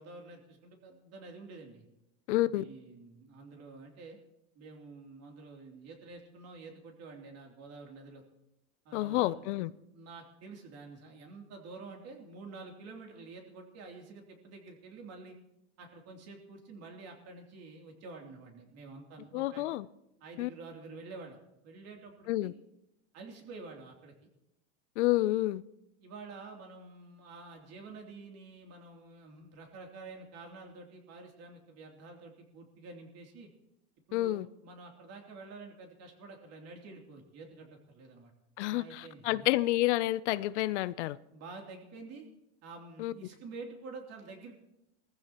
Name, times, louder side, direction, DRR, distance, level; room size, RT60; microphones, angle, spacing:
voice 1, 0.0-1.9 2.4-4.2 4.5-8.2 8.8-15.3 15.8-19.6 20.2-22.5 23.1-24.1 26.0-33.5 34.1-38.3 38.7-39.5 41.3-42.3 42.6-44.6, right 3 dB, 45° right, 3.1 m, -49 dB
voice 2, 2.3-2.6 8.9-9.7 19.3-19.9 20.4-20.5 22.3-22.5 25.0-25.6 34.1-34.5 38.6-41.2 43.0-43.1, left 16 dB, 85° left, 0.6 m, -29 dB
20.0 x 15.0 x 3.0 m
supercardioid pair, 120°, 34 cm